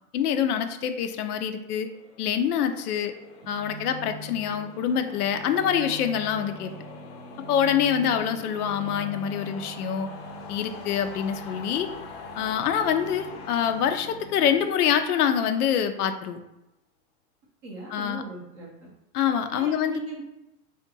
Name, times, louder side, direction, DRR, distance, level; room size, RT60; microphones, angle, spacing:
voice 1, 0.1-1.9 2.2-3.1 3.5-6.7 7.5-10.1 10.5-11.9 12.4-16.4 17.9-18.2 19.1-20.0, left 8 dB, 80° left, 7 dB, 0.6 m, -25 dB
sound 1, 1.4-15.7, left 5 dB, 40° left, 0.6 m, -44 dB
sound 2, 3.4-14.7, right 2 dB, 80° right, 0.5 m, -43 dB
voice 2, 17.6-18.9 19.5-20.2, right 2 dB, 20° right, -4 dB, 0.4 m, -39 dB
3.6 x 2.5 x 4.0 m, 0.88 s
supercardioid pair, 155°, 44 cm